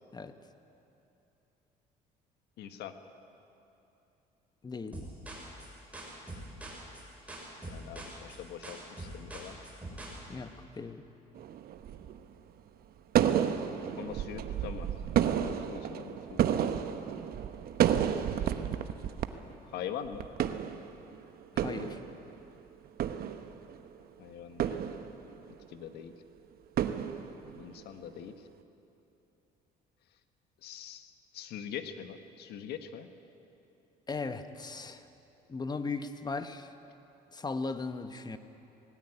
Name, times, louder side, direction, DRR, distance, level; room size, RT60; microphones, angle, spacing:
voice 1, 2.6-2.9 7.3-9.6 13.9-14.9 15.4-16.8 19.6-20.3 24.2-24.8 25.7-26.1 27.6-28.5 30.6-33.1, left 9 dB, 75° left, 9 dB, 1.4 m, -43 dB
voice 2, 4.6-5.1 10.3-11.0 21.5-22.0 34.1-35.1 35.5-36.7 37.3-38.4, left 4 dB, 25° left, 10 dB, 1.1 m, -37 dB
sound 1, 4.9-10.2, right 1 dB, 10° right, 6.0 m, -44 dB
sound 2, 11.4-12.2 13.2-19.3 19.5-19.6 20.1-21.2 21.4-22.4 22.9-23.9 24.6-25.5 26.8-27.8, right 9 dB, 65° right, 1.0 m, -31 dB
19.5 x 16.5 x 10.0 m, 2.9 s
cardioid pair, 110°, 17 cm